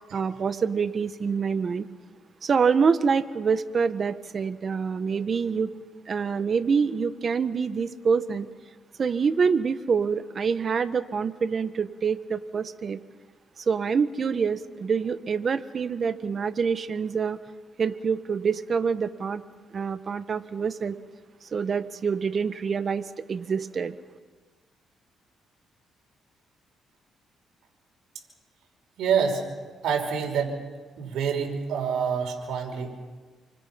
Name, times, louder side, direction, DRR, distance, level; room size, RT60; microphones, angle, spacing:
voice 1, 0.1-1.9 2.4-5.7 6.1-8.5 9.0-13.0 13.6-17.4 17.8-19.4 19.7-21.0 21.4-24.0, right 5 dB, 45° right, 11 dB, 1.4 m, -26 dB
voice 2, 29.0-29.4 29.8-30.6 31.0-33.0, right 6 dB, 80° right, 1 dB, 5.7 m, -27 dB
29.0 x 24.5 x 6.0 m, 1.4 s
cardioid pair, 90°, 0 cm